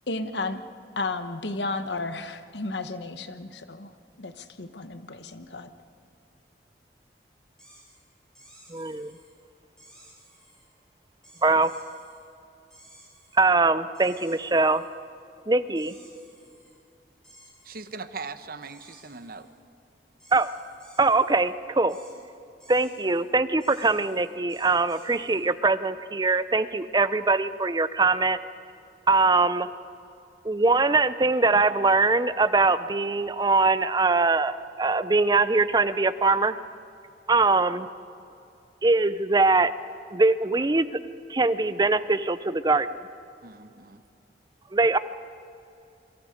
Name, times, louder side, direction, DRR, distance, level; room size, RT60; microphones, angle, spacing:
voice 1, 0.1-0.6 1.0-3.9 4.2-5.7, left 3 dB, 75° left, 10 dB, 1.2 m, -33 dB
sound 1, 7.6-8.0 8.4-9.3 9.8-10.7 11.2-12.2 12.7-13.5 13.9-14.9 15.8-16.7 17.2-17.9 18.6-19.5 20.2-21.5 21.9-22.1 22.6-23.2 23.6-25.5, right 1 dB, 5° left, 8.0 m, -55 dB
voice 2, 8.7-9.1 11.4-11.7 13.3-14.8 15.5-16.0 20.3-20.5 21.0-22.0 22.7-28.4 29.1-29.7 30.4-36.6 37.3-37.9 38.8-39.7 40.1-40.9 41.3-42.9 44.7-45.0, right 3 dB, 25° right, 14 dB, 0.6 m, -22 dB
voice 3, 17.6-19.5 43.4-44.0, right 4 dB, 55° right, 11 dB, 1.0 m, -40 dB
27.5 x 24.0 x 5.2 m, 2.5 s
head